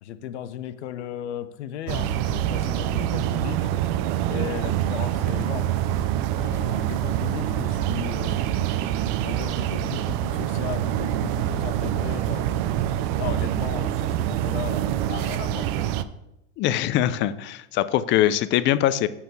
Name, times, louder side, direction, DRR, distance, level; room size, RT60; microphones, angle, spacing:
voice 1, 0.0-3.7 4.3-5.7 6.4-8.5 9.2-12.7 13.2-15.8, left 10 dB, 70° left, 12 dB, 1.0 m, -36 dB
sound 1, 1.9-16.0, right 11 dB, 50° right, 0.7 m, -25 dB
voice 2, 16.6-19.1, left 12 dB, 35° left, 15 dB, 0.5 m, -22 dB
7.2 x 6.0 x 6.9 m, 0.89 s
hypercardioid pair, 120°, 35 cm